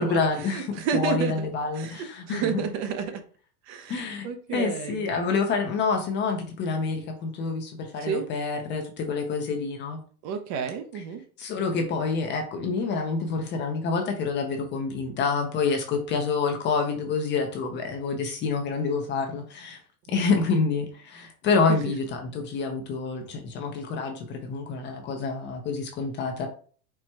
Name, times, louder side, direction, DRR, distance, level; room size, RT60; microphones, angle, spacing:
voice 1, 0.0-2.6 3.9-10.0 11.4-19.8 20.1-26.5, left 4 dB, 25° left, 4 dB, 0.5 m, -27 dB
voice 2, 0.5-1.5 1.7-3.2 3.7-5.1 8.0-8.3 10.2-11.2 20.1-20.2 21.7-21.8, right 7 dB, 40° right, 7 dB, 0.6 m, -30 dB
4.4 x 2.1 x 4.5 m, 0.43 s
supercardioid pair, 145°, 44 cm